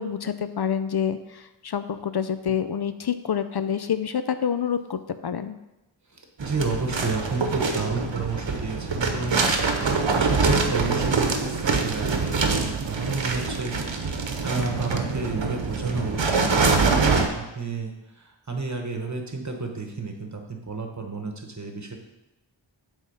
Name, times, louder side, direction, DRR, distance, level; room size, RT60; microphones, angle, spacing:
voice 1, 0.0-5.6, left 8 dB, 60° left, 10 dB, 0.5 m, -27 dB
voice 2, 6.1-22.0, right 3 dB, 40° right, 3 dB, 1.2 m, -31 dB
sound 1, 6.4-17.3, right 4 dB, 80° right, 0.9 m, -24 dB
8.2 x 3.6 x 5.5 m, 0.99 s
wide cardioid pair, 55°, 44 cm